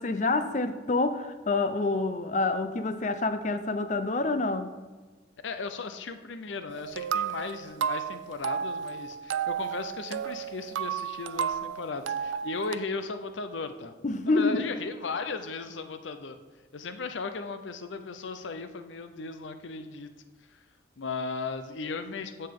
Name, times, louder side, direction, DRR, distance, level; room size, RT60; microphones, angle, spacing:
voice 1, 0.0-4.8 14.0-14.6, left 3 dB, 40° left, 10 dB, 0.5 m, -27 dB
voice 2, 5.4-13.9 14.3-16.4 16.7-20.1 20.5-20.6 21.0-22.5, left 4 dB, 80° left, 9 dB, 0.6 m, -36 dB
sound 1, 6.7-12.8, right 8 dB, 85° right, 0.4 m, -33 dB
14.5 x 5.5 x 3.7 m, 1.3 s
head